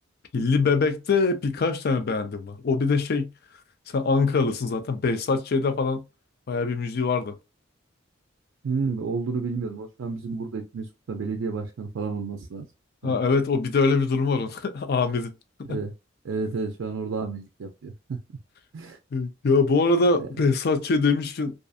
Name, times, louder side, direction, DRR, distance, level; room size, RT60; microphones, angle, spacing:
voice 1, 0.3-3.3 3.9-6.0 6.5-7.4 13.0-15.3 15.6-15.8 19.1-21.5, left 4 dB, 55° left, 0.4 m, -23 dB
voice 2, 8.6-12.7 13.0-13.2 15.6-15.9 16.2-18.2 18.7-19.0 20.2-20.3, right 4 dB, 75° right, 0.4 m, -31 dB
2.5 x 2.4 x 2.3 m
head